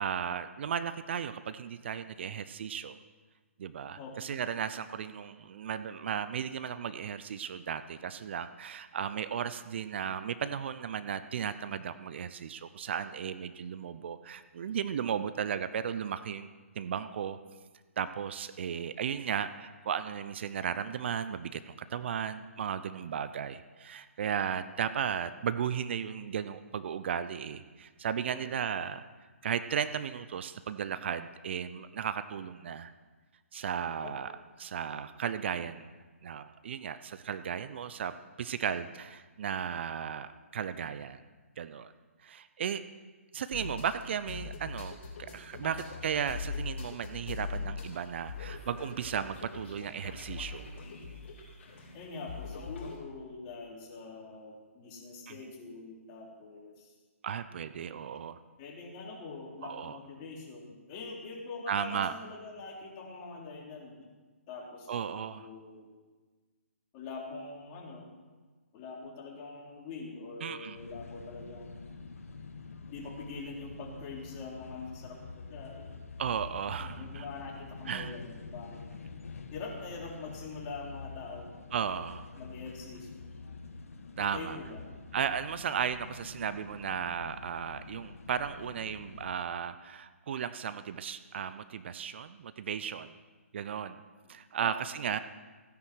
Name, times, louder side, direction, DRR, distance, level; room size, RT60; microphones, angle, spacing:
voice 1, 0.0-3.0 3.6-16.5 16.8-17.4 18.0-29.0 29.4-32.9 33.5-34.3 34.6-35.9 36.2-41.2 41.6-41.9 42.2-42.8 43.3-50.7 55.3-55.4 57.2-58.4 59.6-60.0 61.7-62.1 64.9-65.5 70.4-70.8 76.2-77.2 77.9-78.2 81.7-82.2 84.2-84.6 85.1-93.1 93.5-94.0 94.3-95.2, right 8 dB, 50° right, 13 dB, 0.7 m, -35 dB
voice 2, 4.0-4.3 28.3-28.4 34.0-34.1 45.6-45.7 51.9-56.9 58.6-64.1 64.5-65.9 66.9-68.1 68.7-71.8 72.9-75.9 76.8-78.8 79.5-81.7 82.0-82.1 82.4-83.2 84.2-84.8 94.6-94.7, left 4 dB, 30° left, -2 dB, 3.7 m, -44 dB
sound 1, 43.5-53.0, left 5 dB, 50° left, 5.2 m, -42 dB
sound 2, 70.7-89.4, left 4 dB, 70° left, 1.6 m, -47 dB
16.5 x 9.9 x 6.3 m, 1.4 s
hypercardioid pair, 145°, 8 cm